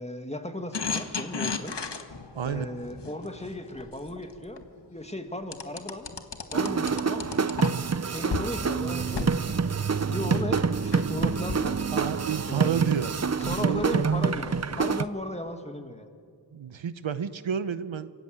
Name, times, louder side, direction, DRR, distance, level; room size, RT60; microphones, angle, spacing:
voice 1, 0.0-1.7 2.4-4.6 4.9-6.1 6.5-7.4 8.1-9.5 10.1-11.8 12.5-13.0 13.4-16.1, left 1 dB, 15° left, 6 dB, 2.4 m, -36 dB
sound 1, 0.7-4.6 5.5-8.0 8.3-8.5 9.0-15.1, left 4 dB, 65° left, 1.7 m, -37 dB
voice 2, 2.3-2.8 11.9-13.1 13.4-14.2 16.5-18.1, right 8 dB, 85° right, 13 dB, 0.9 m, -30 dB
sound 2, 6.5-15.0, right 5 dB, 35° right, 0.7 m, -27 dB
26.0 x 17.5 x 7.9 m, 2.2 s
cardioid pair, 40°, 46 cm